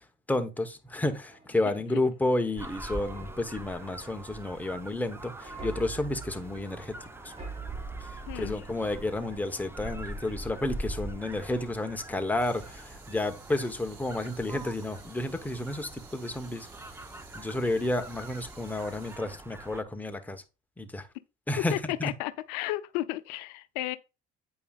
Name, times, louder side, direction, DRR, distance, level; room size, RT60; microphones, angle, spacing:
voice 1, 0.3-6.9 7.2-7.3 8.3-16.7 17.3-20.4 20.8-21.1 21.5-22.1, left 2 dB, 10° left, 1.1 m, -31 dB
sound 1, 0.9-13.2 13.6-13.8, right 4 dB, 30° right, 3.1 m, -48 dB
sound 2, 2.6-19.8, right 1 dB, 10° right, 0.9 m, -43 dB
voice 2, 8.3-8.6 21.7-24.0, left 17 dB, 90° left, 0.6 m, -33 dB
sound 3, 12.4-19.2, right 5 dB, 70° right, 2.6 m, -54 dB
8.6 x 5.3 x 2.4 m
supercardioid pair, 95°, 21 cm